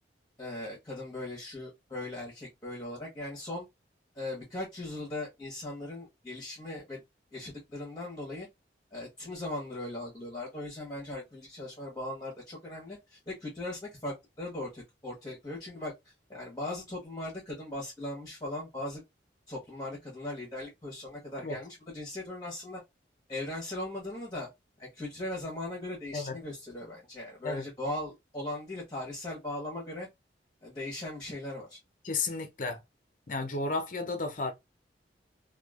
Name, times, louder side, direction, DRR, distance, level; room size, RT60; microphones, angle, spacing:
voice 1, 0.4-3.7 4.1-7.0 7.3-8.5 8.9-19.0 19.5-22.8 23.3-24.5 24.8-30.1 30.6-31.8, left 1 dB, 20° left, 1.0 m, -39 dB
voice 2, 32.0-32.8 33.3-34.5, left 3 dB, 45° left, 0.6 m, -33 dB
3.0 x 2.3 x 2.3 m
head